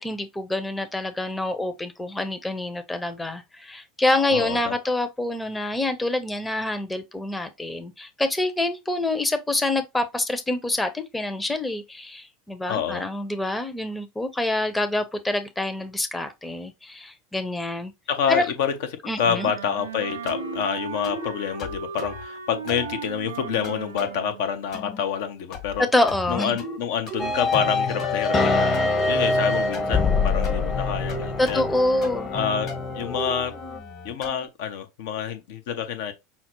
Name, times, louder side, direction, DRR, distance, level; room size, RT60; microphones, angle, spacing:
voice 1, 0.0-17.9 18.3-18.4 19.0-19.5 25.8-26.6 31.4-32.3, left 2 dB, 10° left, 0.7 m, -26 dB
voice 2, 4.3-4.7 12.7-13.1 18.1-18.8 19.2-25.9 26.3-28.8 29.1-31.6 32.3-32.7 32.9-33.5 34.0-36.1, left 8 dB, 65° left, 0.7 m, -27 dB
Wind instrument woodwind instrument, 19.2-24.5, right 6 dB, 85° right, 0.4 m, -36 dB
sound 1, 20.3-20.6 21.0-21.3 21.6-22.2 22.7-22.9 23.6-24.1 24.7-25.0 25.5-25.8 26.1-26.8 27.1-27.7 28.0-28.9 29.7-30.0 30.4-30.6 31.1-31.7 32.0-32.4 32.7-34.5, left 1 dB, 50° left, 1.6 m, -37 dB
sound 2, 27.2-33.8, left 3 dB, 30° left, 1.0 m, -24 dB
5.6 x 2.0 x 3.0 m
hypercardioid pair, 85°, 0 cm